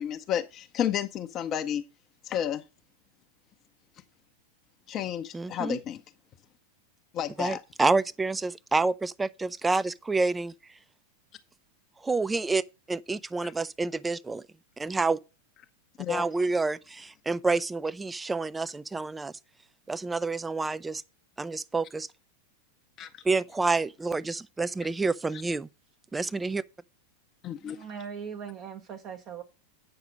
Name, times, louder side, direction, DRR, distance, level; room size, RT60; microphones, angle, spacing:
voice 1, 0.0-1.8 2.2-2.6 4.9-6.0 7.1-7.6 13.4-13.5 16.0-16.3 23.0-23.2 27.4-27.8, left 10 dB, 30° left, 0.6 m, -31 dB
voice 2, 5.3-5.8 7.4-10.5 12.0-12.6 12.9-14.4 14.8-15.2 16.1-19.3 19.9-21.0 21.4-22.1 23.2-25.7 26.1-26.6, right 3 dB, 10° right, 0.4 m, -28 dB
voice 3, 27.6-29.4, right 7 dB, 35° right, 0.8 m, -40 dB
8.7 x 5.8 x 5.1 m
figure-of-eight pair, 90°, 0 cm